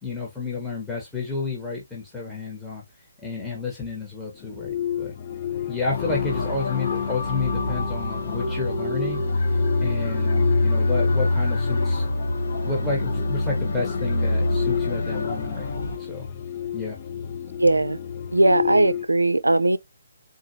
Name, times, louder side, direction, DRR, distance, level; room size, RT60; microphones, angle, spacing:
voice 1, 0.0-2.8 3.2-5.1 5.7-9.2 9.8-12.1 12.6-15.7 16.1-16.3 16.7-17.0, left 4 dB, 5° left, 1.1 m, -31 dB
sound 1, 4.3-19.1, left 10 dB, 30° left, 0.5 m, -32 dB
sound 2, 5.9-16.0, left 2 dB, 50° left, 1.0 m, -25 dB
voice 2, 17.6-18.0 18.3-19.8, right 2 dB, 80° right, 0.4 m, -19 dB
3.8 x 2.7 x 2.7 m
figure-of-eight pair, 145°, 0 cm